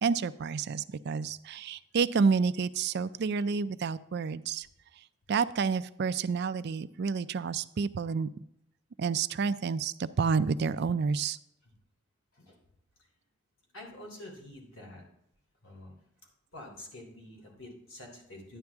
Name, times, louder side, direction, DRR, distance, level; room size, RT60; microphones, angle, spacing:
voice 1, 0.0-4.7 5.3-8.3 9.0-11.4, right 5 dB, 50° right, 15 dB, 0.4 m, -29 dB
voice 2, 13.7-15.0 15.6-15.9 16.5-18.6, left 1 dB, 70° left, 0 dB, 3.3 m, -47 dB
11.0 x 9.6 x 3.5 m, 0.76 s
head